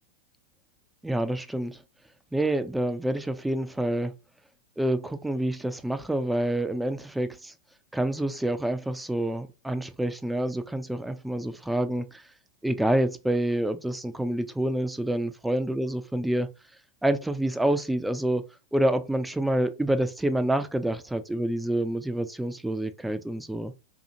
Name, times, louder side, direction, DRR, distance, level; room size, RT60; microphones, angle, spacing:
voice 1, 1.0-1.8 2.3-4.1 4.8-7.5 7.9-12.2 12.6-16.5 17.0-18.4 18.7-23.7, right 1 dB, 5° right, 0.4 m, -27 dB
2.8 x 2.4 x 2.7 m
hypercardioid pair, 100°, 0 cm